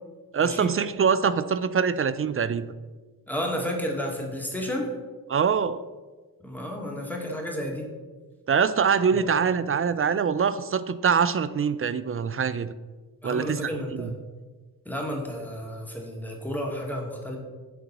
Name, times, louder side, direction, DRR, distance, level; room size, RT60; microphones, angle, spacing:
voice 1, 0.3-2.7 5.3-5.8 8.5-12.7 13.2-14.1, right 6 dB, 35° right, 14 dB, 0.4 m, -24 dB
voice 2, 3.3-4.9 6.4-7.9 9.1-9.2 13.2-14.2 14.9-17.4, equal, 5° left, -1 dB, 2.1 m, -32 dB
7.0 x 3.7 x 5.9 m, 1.3 s
supercardioid pair, 45°, 41 cm